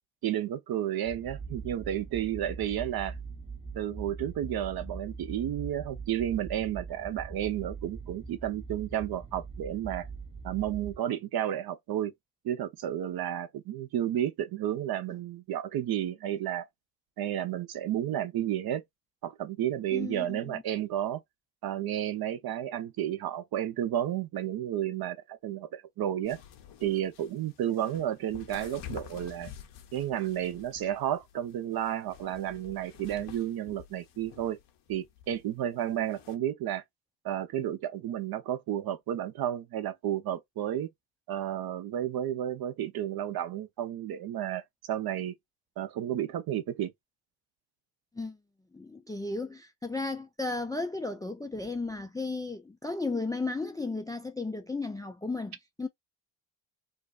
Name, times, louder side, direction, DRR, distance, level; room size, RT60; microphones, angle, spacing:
voice 1, 0.2-3.2 3.7-10.1 10.4-12.1 12.4-16.7 17.2-18.8 19.2-21.2 21.6-26.4 26.8-29.5 29.9-34.6 34.9-36.8 37.2-40.9 41.3-45.3 45.8-46.9, right 11 dB, 50° right, 0.7 m, -32 dB
sound 1, 1.1-11.0, right 4 dB, 15° right, 0.7 m, -42 dB
voice 2, 19.9-20.6 48.1-48.4 48.7-55.9, left 3 dB, 10° left, 0.4 m, -34 dB
sound 2, 26.2-36.3, left 9 dB, 60° left, 0.8 m, -49 dB
2.6 x 2.3 x 2.3 m
hypercardioid pair, 60°, 48 cm